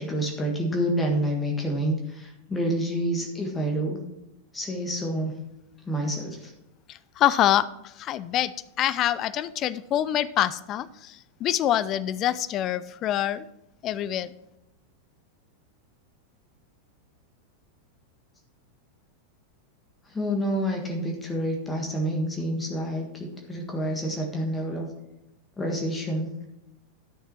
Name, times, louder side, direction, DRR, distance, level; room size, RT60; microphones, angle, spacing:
voice 1, 0.0-4.0 4.5-5.3 5.9-6.5 20.1-24.9 25.6-26.3, equal, 15° left, 1 dB, 1.6 m, -28 dB
voice 2, 7.2-7.7 8.0-8.5 8.8-10.9 11.4-13.4 13.8-14.3, left 12 dB, 35° left, 16 dB, 0.4 m, -25 dB
11.0 x 6.6 x 4.6 m, 0.86 s
figure-of-eight pair, 90°, 0 cm